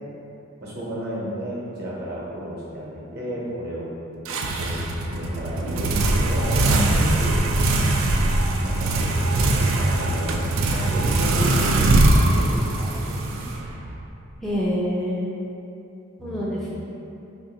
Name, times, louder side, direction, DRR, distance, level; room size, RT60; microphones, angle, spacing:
voice 1, 0.6-7.4 8.0-13.5 16.2-16.7, equal, 55° right, -6 dB, 0.8 m, -33 dB
sound 1, 4.2-14.0, right 2 dB, 85° right, 0.4 m, -21 dB
voice 2, 14.4-15.3 16.2-16.8, equal, ahead, -7 dB, 0.3 m, -26 dB
3.0 x 2.6 x 4.0 m, 2.8 s
head